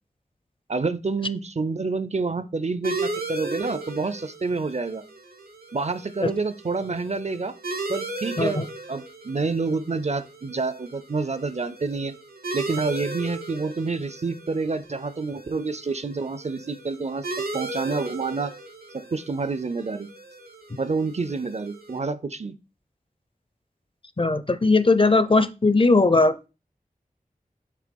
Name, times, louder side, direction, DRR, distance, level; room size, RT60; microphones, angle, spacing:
voice 1, 0.7-5.0 5.7-7.5 7.9-8.6 8.9-12.2 12.5-17.3 17.5-18.5 18.9-20.1 20.8-22.6, right 4 dB, 50° right, 13 dB, 0.5 m, -28 dB
sound 1, 2.8-22.0, right 2 dB, 90° right, 1.1 m, -36 dB
voice 2, 24.2-26.3, left 3 dB, 35° left, 13 dB, 0.5 m, -19 dB
6.6 x 3.4 x 5.3 m, 0.30 s
wide cardioid pair, 60°, 15 cm